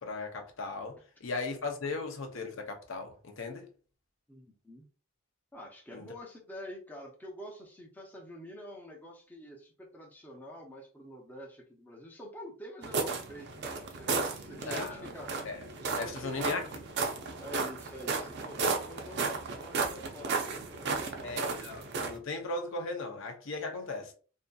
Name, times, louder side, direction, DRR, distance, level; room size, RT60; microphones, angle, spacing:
voice 1, 0.0-0.9 1.2-3.7 5.9-6.0 14.7-15.1 15.5-15.6 16.0-16.6 21.2-24.1, left 3 dB, 65° left, 0.5 m, -37 dB
voice 2, 4.3-4.8 5.5-15.4 15.8-16.6 17.4-21.4, equal, 10° left, 0.5 m, -47 dB
sound 1, 12.8-22.2, right 4 dB, 50° right, 0.4 m, -34 dB
2.6 x 2.5 x 2.3 m
head